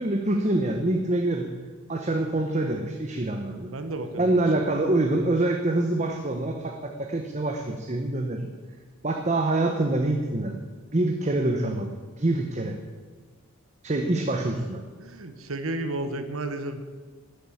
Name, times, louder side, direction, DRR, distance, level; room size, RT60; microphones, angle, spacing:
voice 1, 0.0-1.5 1.9-3.7 4.2-8.5 9.0-10.6 10.9-11.9 12.2-12.8 13.8-14.8, right 2 dB, 30° right, 4 dB, 0.9 m, -25 dB
voice 2, 3.7-4.4 15.0-16.8, right 2 dB, 75° right, 8 dB, 1.1 m, -32 dB
12.5 x 8.1 x 8.5 m, 1.4 s
head